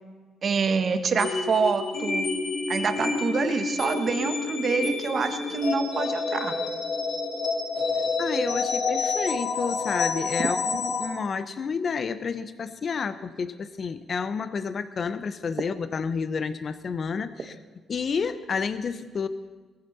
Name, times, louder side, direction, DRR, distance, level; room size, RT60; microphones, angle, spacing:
voice 1, 0.4-2.2 2.7-6.6, right 5 dB, 50° right, 8 dB, 1.4 m, -26 dB
sound 1, 1.2-11.1, left 4 dB, 65° left, 3.8 m, -28 dB
voice 2, 8.2-17.6 17.9-19.3, left 5 dB, 45° left, 13 dB, 0.9 m, -30 dB
19.0 x 15.0 x 4.2 m, 1.4 s
cardioid pair, 90°, 0 cm